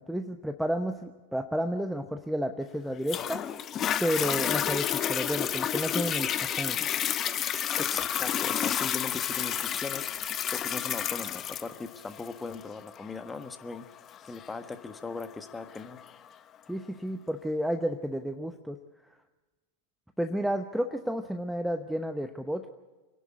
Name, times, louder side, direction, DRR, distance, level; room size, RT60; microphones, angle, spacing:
voice 1, 0.0-3.4 4.0-6.9 16.7-18.8 20.2-22.7, equal, ahead, 7 dB, 0.9 m, -31 dB
Toilet flush, 3.1-16.1 16.7-16.8, left 10 dB, 30° left, 0.8 m, -31 dB
voice 2, 7.8-10.1 10.5-13.8 14.2-16.0, left 4 dB, 15° left, 9 dB, 1.5 m, -39 dB
25.5 x 11.0 x 9.6 m, 1.3 s
hypercardioid pair, 100°, 0 cm